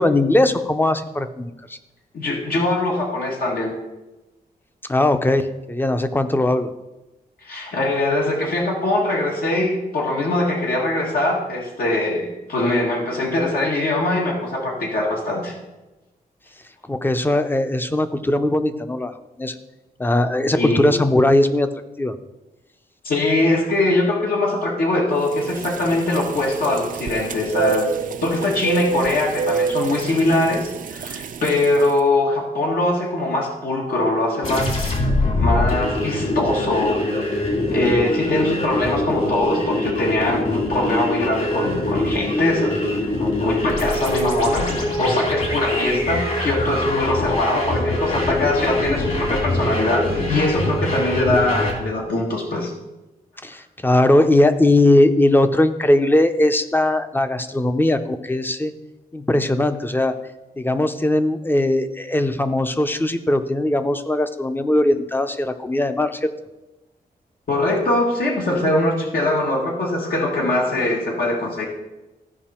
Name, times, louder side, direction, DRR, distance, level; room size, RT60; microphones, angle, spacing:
voice 1, 0.0-1.8 4.9-6.7 16.9-19.1 19.4-19.5 20.0-21.7 22.0-22.1 53.4-58.7 59.1-60.1 60.6-66.3, left 1 dB, 15° left, 9 dB, 0.6 m, -19 dB
voice 2, 2.1-3.7 7.4-15.5 20.6-20.9 23.0-27.9 28.2-34.9 35.3-52.7 67.5-71.7, left 2 dB, 75° left, -2 dB, 1.8 m, -22 dB
sound 1, 25.3-31.9, right 6 dB, 60° right, 0.5 m, -28 dB
sound 2, 34.4-51.7, left 1 dB, 50° left, 2.6 m, -23 dB
14.5 x 5.4 x 4.4 m, 1.0 s
wide cardioid pair, 115°, 16 cm